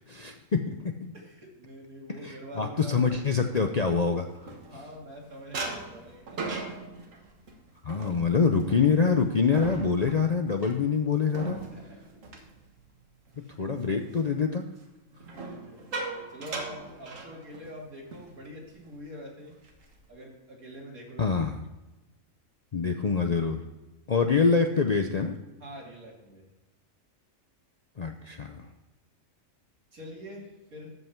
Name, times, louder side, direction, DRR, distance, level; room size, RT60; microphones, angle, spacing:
voice 1, 0.0-1.1 2.2-4.5 7.8-11.6 13.6-14.6 21.2-21.6 22.7-23.6 24.1-25.4 28.0-28.7, left 5 dB, 50° left, 5 dB, 0.5 m, -25 dB
voice 2, 1.1-3.3 4.7-6.7 11.7-12.1 13.4-13.5 15.1-19.6 20.1-21.3 25.6-26.5 29.9-30.9, equal, 85° right, -2 dB, 2.9 m, -45 dB
sound 1, 3.7-5.1 5.5-13.4 13.7-14.0 15.2-17.8 18.1-18.3 18.6-18.9 19.4-20.1, right 3 dB, 65° right, 1.7 m, -39 dB
13.5 x 5.5 x 4.5 m, 1.1 s
omnidirectional pair, 1.5 m